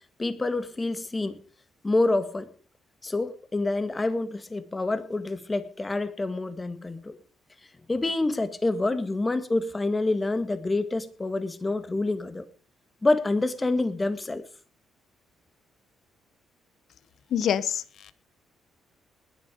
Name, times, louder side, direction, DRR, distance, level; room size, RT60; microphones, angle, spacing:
voice 1, 0.2-1.4 1.8-2.5 3.0-7.2 7.9-12.4 13.0-14.4, left 2 dB, 20° left, 11 dB, 2.0 m, -27 dB
voice 2, 17.3-18.1, left 9 dB, 65° left, 15 dB, 1.1 m, -26 dB
20.5 x 8.0 x 5.2 m, 0.41 s
cardioid pair, 90°, 0 cm